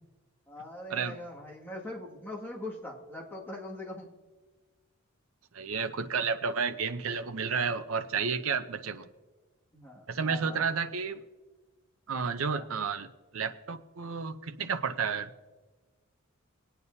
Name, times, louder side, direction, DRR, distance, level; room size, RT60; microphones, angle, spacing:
voice 1, 0.5-4.1 9.7-10.7 12.5-12.7, left 1 dB, 10° left, -4 dB, 2.0 m, -42 dB
voice 2, 5.5-9.1 10.1-11.2 12.1-13.1 13.3-15.3, right 5 dB, 70° right, 10 dB, 0.7 m, -31 dB
20.5 x 9.0 x 2.7 m, 1.3 s
head